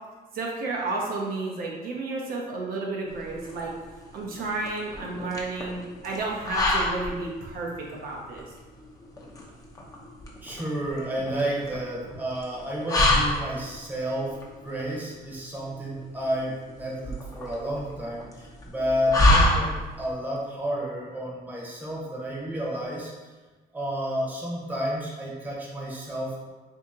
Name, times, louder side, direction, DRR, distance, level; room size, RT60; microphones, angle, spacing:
voice 1, 0.3-3.7 4.1-8.4, right 3 dB, 60° right, -2 dB, 0.7 m, -32 dB
sound 1, 3.1-20.1, left 1 dB, 20° left, 0.7 m, -28 dB
voice 2, 10.4-19.7 20.0-23.1 23.7-26.5, equal, 10° right, -4 dB, 0.9 m, -31 dB
2.8 x 2.7 x 3.7 m, 1.3 s
cardioid pair, 110°, 17 cm